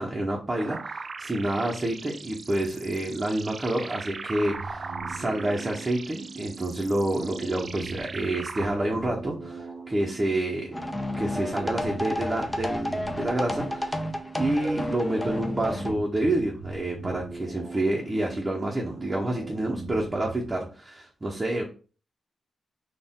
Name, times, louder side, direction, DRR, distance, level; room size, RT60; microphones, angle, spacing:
voice 1, 0.0-10.7 11.2-14.0 14.3-21.6, right 1 dB, 25° right, -1 dB, 0.9 m, -28 dB
sound 1, 0.6-8.7, right 4 dB, 45° right, 0.4 m, -39 dB
sound 2, 4.4-20.5, right 3 dB, 90° right, 1.2 m, -41 dB
sound 3, 10.7-15.9, left 1 dB, 15° left, 0.7 m, -31 dB
4.3 x 2.5 x 3.7 m, 0.36 s
cardioid pair, 90°, 0 cm